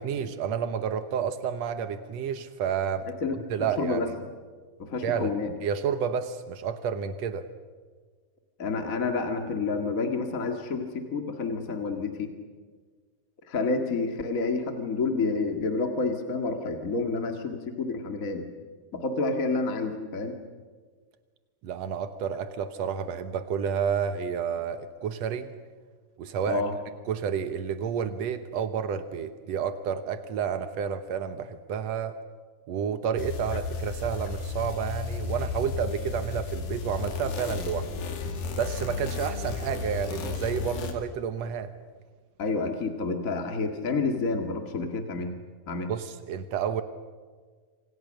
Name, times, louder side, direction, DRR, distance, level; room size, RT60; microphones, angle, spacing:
voice 1, 0.0-3.1 3.5-4.0 5.0-5.3 5.6-7.5 21.6-25.5 26.2-26.6 27.0-32.2 32.7-37.9 38.5-41.7 45.9-46.8, right 7 dB, 85° right, 9 dB, 1.5 m, -30 dB
voice 2, 3.2-4.1 4.8-5.5 8.6-12.3 13.5-18.5 18.9-20.4 26.5-26.8 42.4-45.3 45.7-45.9, left 3 dB, 40° left, 4 dB, 1.2 m, -29 dB
sound 1, 33.2-40.9, left 4 dB, 65° left, 4.0 m, -33 dB
27.5 x 27.0 x 6.5 m, 1.5 s
omnidirectional pair, 4.6 m